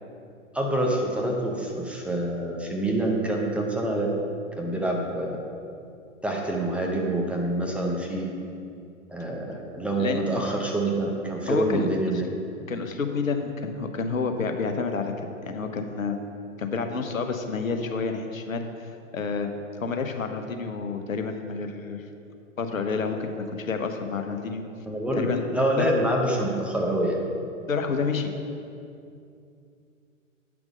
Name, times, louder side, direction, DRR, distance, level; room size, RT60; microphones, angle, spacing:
voice 1, 0.5-4.1 4.6-5.4 6.2-8.3 9.1-12.3 24.8-27.2, right 1 dB, 5° right, -2 dB, 0.6 m, -26 dB
voice 2, 11.5-11.9 12.7-16.2 16.6-19.5 19.8-22.0 22.6-24.6 25.2-25.4 25.8-25.9 27.7-28.3, left 4 dB, 80° left, 6 dB, 1.0 m, -29 dB
8.6 x 6.0 x 5.3 m, 2.5 s
figure-of-eight pair, 110°, 40 cm